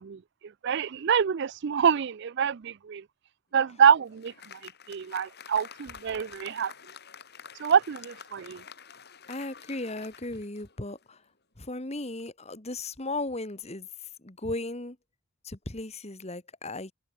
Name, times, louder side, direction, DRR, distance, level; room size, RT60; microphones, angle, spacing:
voice 1, 0.0-3.0 3.5-6.7 7.6-8.6, right 7 dB, 50° right, 0.4 m, -26 dB
Applause, 3.6-11.2, left 7 dB, 50° left, 5.4 m, -49 dB
voice 2, 9.3-11.2 11.6-15.0 15.4-16.9, left 2 dB, 30° left, 1.7 m, -36 dB
head